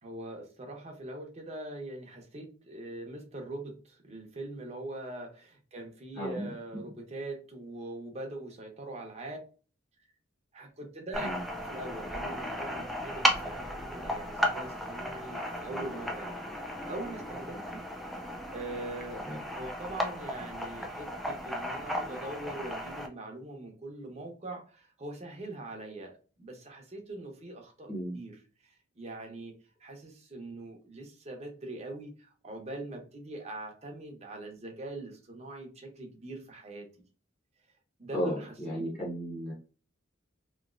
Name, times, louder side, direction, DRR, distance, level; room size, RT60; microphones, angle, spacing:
voice 1, 0.0-9.4 10.5-11.3 11.6-16.5 16.8-17.8 18.5-19.2 19.5-28.3 28.6-29.5 29.8-36.9 38.0-38.8, right 2 dB, 35° right, 2 dB, 0.8 m, -42 dB
voice 2, 6.2-6.5 11.2-11.4 19.2-19.4 27.9-28.1 38.1-39.5, equal, 25° left, -8 dB, 1.0 m, -34 dB
sound 1, 11.1-23.1, equal, ahead, 0.4 m, -35 dB
3.1 x 2.9 x 2.4 m, 0.36 s
head